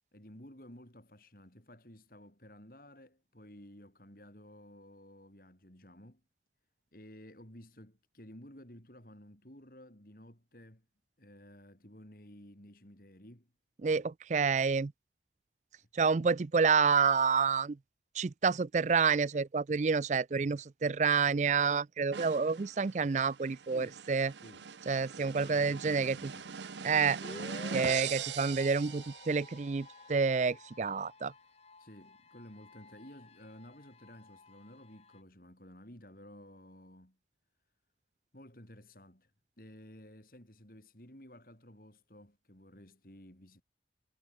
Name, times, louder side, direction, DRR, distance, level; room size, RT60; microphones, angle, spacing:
voice 1, 0.1-6.2 6.9-10.9 11.2-13.5 15.8-15.9 23.7-24.0 24.4-24.7 25.2-26.6 27.3-27.6 31.8-37.2 38.3-39.3 39.6-43.6, left 1 dB, 50° left, 5.3 m, -54 dB
voice 2, 13.8-14.9 15.9-17.8 18.2-24.3 24.9-26.3 26.8-27.2 27.7-31.3, right 5 dB, 40° right, 0.4 m, -29 dB
sound 1, 22.1-29.7, right 7 dB, 80° right, 0.7 m, -42 dB
sound 2, 27.2-35.2, left 2 dB, 35° left, 1.0 m, -52 dB
head